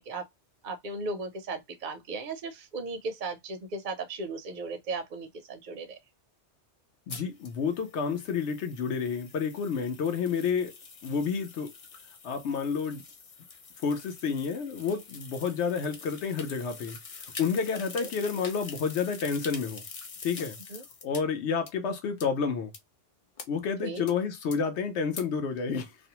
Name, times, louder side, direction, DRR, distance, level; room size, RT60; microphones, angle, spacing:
voice 1, 0.6-6.0 18.0-18.1 20.7-20.8 23.8-24.0, right 3 dB, 60° right, 0.5 m, -36 dB
voice 2, 7.1-10.7 11.0-11.7 12.2-13.0 13.8-17.0 17.4-19.8 20.2-20.6 21.0-22.7 23.5-26.0, left 6 dB, 75° left, 0.9 m, -30 dB
Rewinding Reel to Reel Tape Machine, 7.1-21.2 21.7-21.8 22.2-22.3 22.7-22.8 23.4-23.5 24.1-24.2 24.5-24.6 25.2-25.3, left 5 dB, 50° left, 0.4 m, -45 dB
2.5 x 2.1 x 2.7 m
omnidirectional pair, 1.2 m